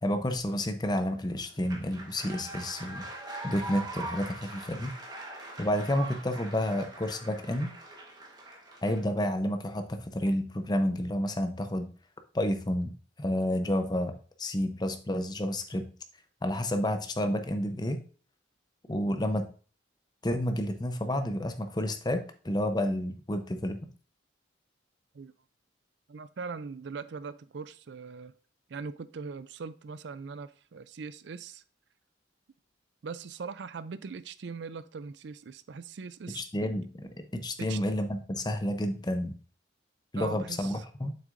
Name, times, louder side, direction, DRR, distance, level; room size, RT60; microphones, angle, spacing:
voice 1, 0.0-3.0 3.4-4.9 5.6-7.7 8.8-11.9 12.3-14.1 14.4-15.9 16.4-18.0 18.9-19.5 20.2-23.8 36.3-39.4 40.1-41.1, left 1 dB, 20° left, 7 dB, 0.7 m, -30 dB
sound 1, 0.9-9.0, right 2 dB, 20° right, 1.2 m, -42 dB
voice 2, 26.1-28.3 28.7-31.6 33.0-36.7 37.6-37.8 40.2-40.8, right 5 dB, 65° right, 15 dB, 0.4 m, -41 dB
7.4 x 6.0 x 2.6 m, 0.39 s
head